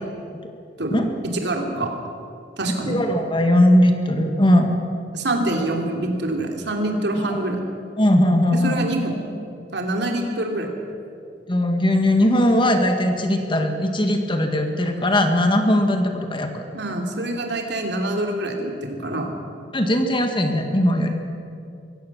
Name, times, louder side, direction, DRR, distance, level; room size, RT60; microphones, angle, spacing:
voice 1, 0.8-1.9 2.6-3.0 5.1-7.6 8.5-9.1 9.7-10.7 16.7-19.3, right 1 dB, 65° right, 2 dB, 2.9 m, -25 dB
voice 2, 2.9-4.7 7.3-7.4 8.0-8.8 11.5-16.6 19.7-21.1, left 1 dB, 25° left, 5 dB, 1.9 m, -19 dB
24.0 x 16.0 x 7.3 m, 2.4 s
head